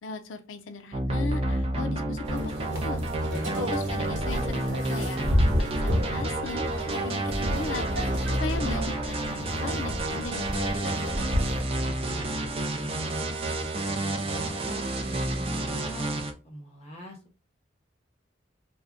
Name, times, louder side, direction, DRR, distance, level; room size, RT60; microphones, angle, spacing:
voice 1, 0.0-2.5 2.8-3.0 3.6-5.2 5.6-7.9 8.4-11.0, left 3 dB, 85° left, 9 dB, 0.5 m, -37 dB
sound 1, 0.9-16.3, right 1 dB, 30° right, 0.4 m, -30 dB
sound 2, 2.2-11.6, equal, 65° right, 1.1 m, -30 dB
voice 2, 3.3-3.6 11.7-13.3 13.7-17.4, equal, 35° left, 1 dB, 0.7 m, -43 dB
2.5 x 2.2 x 3.4 m, 0.32 s
head